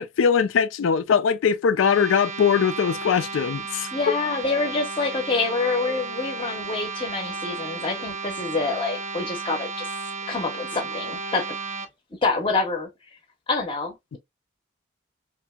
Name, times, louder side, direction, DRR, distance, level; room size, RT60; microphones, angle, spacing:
voice 1, 0.0-3.9, left 6 dB, 85° left, 0.4 m, -21 dB
sound 1, 1.7-11.9, right 4 dB, 35° right, 0.3 m, -34 dB
voice 2, 3.9-9.9 10.3-11.5 12.2-12.9 13.5-14.2, left 3 dB, 25° left, 0.6 m, -26 dB
2.8 x 2.5 x 2.2 m
head